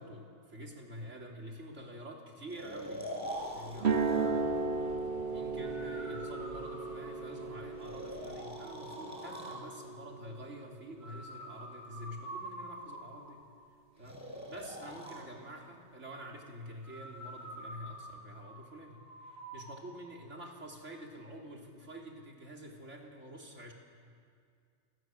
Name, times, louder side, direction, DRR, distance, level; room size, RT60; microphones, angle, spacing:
voice 1, 0.0-3.1 3.5-13.4 14.0-14.2 14.5-23.7, equal, 75° right, 0 dB, 3.8 m, -47 dB
Breathing, 2.5-4.3 5.6-7.3 7.8-9.6 11.0-13.3 14.0-15.2 16.8-19.7, equal, 15° right, 6.2 m, -45 dB
sound 1, 3.2-8.4, left 1 dB, 45° left, 4.5 m, -52 dB
sound 2, 3.8-11.8, right 4 dB, 60° right, 1.8 m, -36 dB
29.0 x 25.0 x 7.9 m, 2.3 s
omnidirectional pair, 1.2 m